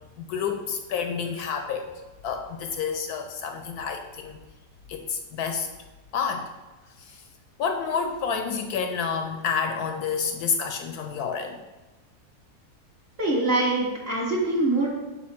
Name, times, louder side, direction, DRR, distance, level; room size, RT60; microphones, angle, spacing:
voice 1, 0.2-1.9 2.2-4.4 4.9-5.7 6.1-6.5 7.0-7.2 7.6-11.6, left 6 dB, 70° left, 5 dB, 1.0 m, -29 dB
voice 2, 13.2-14.9, right 2 dB, 40° right, -3 dB, 1.2 m, -24 dB
4.6 x 4.3 x 5.7 m, 1.2 s
omnidirectional pair, 1.9 m